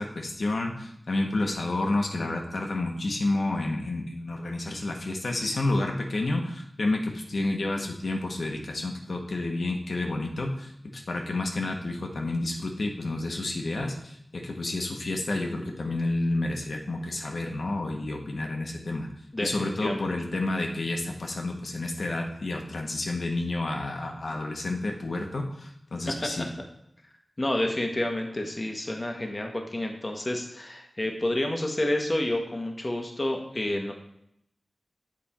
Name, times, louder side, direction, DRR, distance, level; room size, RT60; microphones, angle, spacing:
voice 1, 0.0-19.1 19.4-26.5, left 2 dB, 75° left, 2 dB, 1.1 m, -30 dB
voice 2, 19.3-20.1 26.0-26.3 27.4-33.9, left 1 dB, 35° left, 3 dB, 1.0 m, -29 dB
7.5 x 4.3 x 4.3 m, 0.75 s
wide cardioid pair, 70°, 0 cm